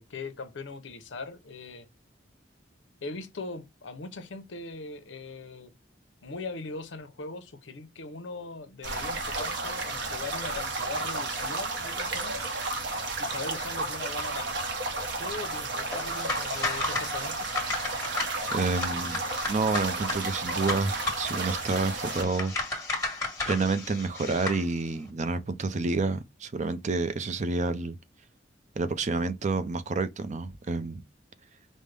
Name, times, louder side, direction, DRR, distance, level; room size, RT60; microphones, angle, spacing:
voice 1, 0.0-1.9 3.0-5.7 6.2-12.6 13.2-14.6 15.2-17.5, left 3 dB, 75° left, 0.7 m, -40 dB
sound 1, 8.8-22.2, right 2 dB, 65° right, 0.8 m, -32 dB
sound 2, 15.9-24.6, left 2 dB, 15° left, 1.6 m, -34 dB
voice 2, 18.5-19.2 19.5-22.5 23.5-28.0 28.8-31.0, right 3 dB, 40° right, 0.5 m, -29 dB
5.2 x 2.1 x 3.2 m
head